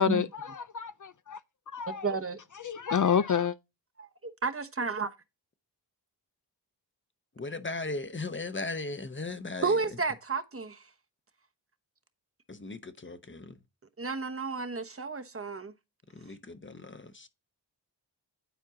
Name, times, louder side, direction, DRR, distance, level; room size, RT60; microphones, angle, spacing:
voice 1, 0.0-1.4 1.7-2.1 2.6-3.6, left 7 dB, 45° left, 0.5 m, -28 dB
voice 2, 1.9-2.4 4.0-5.1 9.6-10.9 14.0-15.7, right 4 dB, 30° right, 1.0 m, -32 dB
voice 3, 7.4-9.8 12.5-13.5 16.1-17.3, left 3 dB, 25° left, 0.9 m, -37 dB
10.5 x 4.4 x 3.7 m
cardioid pair, 45°, 43 cm